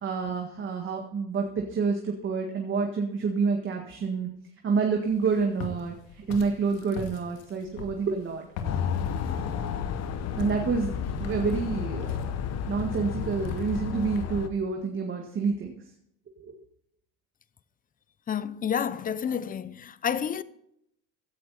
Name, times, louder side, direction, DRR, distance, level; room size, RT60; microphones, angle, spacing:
voice 1, 0.0-4.3 4.6-5.9 6.3-8.4 10.4-10.9 11.2-12.3 12.7-15.7 16.4-16.5, right 5 dB, 30° right, 1.9 m, -28 dB
Walk footsteps, 5.1-14.2, left 5 dB, 85° left, 2.4 m, -43 dB
sound 1, 8.6-14.5, left 7 dB, 40° left, 1.3 m, -31 dB
voice 2, 18.3-20.4, left 8 dB, 20° left, 0.6 m, -29 dB
16.0 x 11.0 x 4.2 m
cardioid pair, 125°, 38 cm